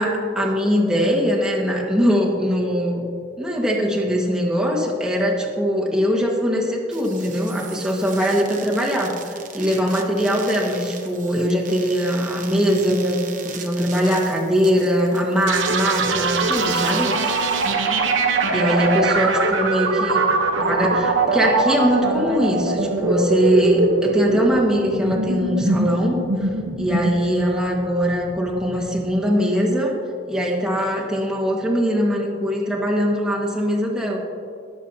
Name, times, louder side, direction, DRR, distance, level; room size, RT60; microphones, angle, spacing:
voice 1, 0.0-3.1 3.4-13.2 13.5-17.1 18.5-20.2 20.6-26.5 26.8-29.9 30.2-34.2, equal, 5° right, -3 dB, 1.7 m, -21 dB
sound 1, 6.9-17.7, right 7 dB, 45° right, 1.0 m, -40 dB
sound 2, 15.5-29.1, right 3 dB, 85° right, 1.1 m, -22 dB
21.5 x 7.3 x 2.9 m, 2.3 s
head